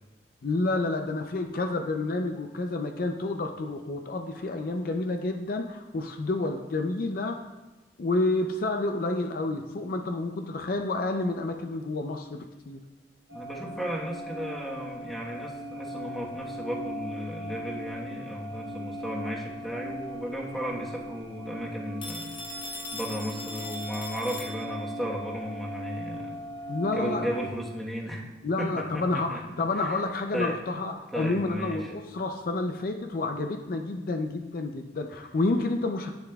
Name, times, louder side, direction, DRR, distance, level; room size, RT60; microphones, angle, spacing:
voice 1, 0.4-7.4 8.0-12.8 26.7-27.3 28.4-36.1, left 2 dB, 55° left, 5 dB, 0.4 m, -29 dB
voice 2, 13.3-26.4 26.9-28.2 28.6-30.0 30.3-30.6 31.1-31.9, equal, ahead, -3 dB, 1.1 m, -35 dB
sound 1, 13.3-27.5, equal, 70° right, 1.0 m, -39 dB
Telephone, 22.0-25.0, left 2 dB, 30° left, 0.8 m, -39 dB
10.5 x 6.9 x 2.3 m, 1.1 s
head